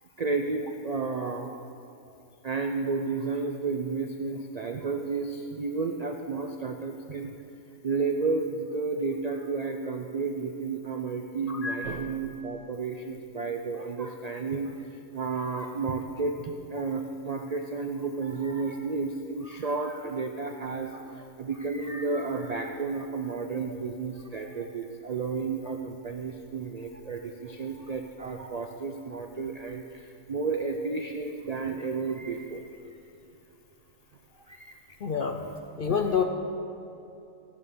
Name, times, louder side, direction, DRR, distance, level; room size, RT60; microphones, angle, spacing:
voice 1, 0.0-1.5 2.4-7.3 7.8-33.0 34.5-34.8 35.4-35.6 36.0-36.2, right 4 dB, 65° right, 4 dB, 0.3 m, -32 dB
voice 2, 11.5-12.0 35.0-35.4 35.8-36.2, left 6 dB, 55° left, 5 dB, 0.6 m, -28 dB
15.5 x 6.7 x 6.8 m, 2.7 s
omnidirectional pair, 1.5 m